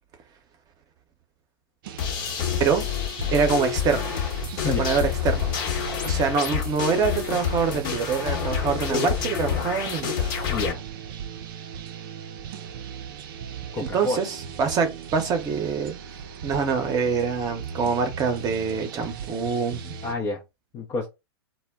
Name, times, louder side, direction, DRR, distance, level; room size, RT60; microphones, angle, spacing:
sound 1, 1.8-20.1, right 7 dB, 55° right, 0.5 m, -38 dB
sound 2, 2.0-10.7, left 9 dB, 45° left, 1.0 m, -28 dB
voice 1, 3.3-4.1 4.6-5.5 6.0-10.3 13.9-16.0 16.4-20.0, right 6 dB, 30° right, 0.8 m, -25 dB
voice 2, 10.5-10.8 13.7-14.2 20.0-20.4 20.7-21.1, left 3 dB, 25° left, 0.5 m, -28 dB
2.1 x 2.1 x 3.5 m
hypercardioid pair, 110°, 14 cm